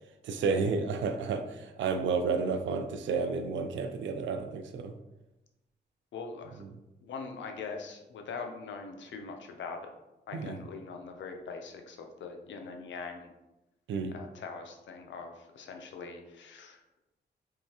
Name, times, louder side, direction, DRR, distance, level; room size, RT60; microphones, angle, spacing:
voice 1, 0.2-4.9 6.6-6.7 10.3-10.6 13.9-14.1, right 4 dB, 85° right, 7 dB, 0.4 m, -31 dB
voice 2, 6.1-6.6 7.0-9.9 10.3-13.3 14.1-16.8, left 4 dB, 80° left, 4 dB, 0.6 m, -42 dB
3.6 x 3.1 x 2.8 m, 0.96 s
cardioid pair, 60°, 19 cm